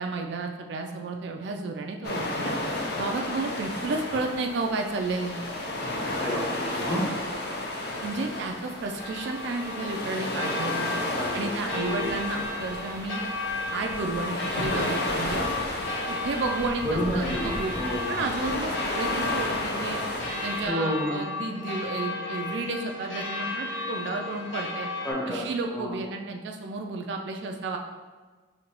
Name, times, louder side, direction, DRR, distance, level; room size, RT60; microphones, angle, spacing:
voice 1, 0.0-2.5 3.0-5.4 8.0-10.9 11.3-13.2 13.7-15.5 16.1-17.7 18.1-20.0 20.4-24.9 25.3-27.8, right 3 dB, 65° right, 2 dB, 0.4 m, -32 dB
sound 1, 2.0-20.7, left 1 dB, 60° left, 0.6 m, -32 dB
voice 2, 6.1-7.2 11.1-12.2 16.8-18.2 20.7-21.1 25.0-25.4 25.7-26.0, equal, 10° left, -6 dB, 1.1 m, -30 dB
sound 2, 6.9-25.1, left 3 dB, 85° left, 1.1 m, -35 dB
5.3 x 2.8 x 2.9 m, 1.4 s
head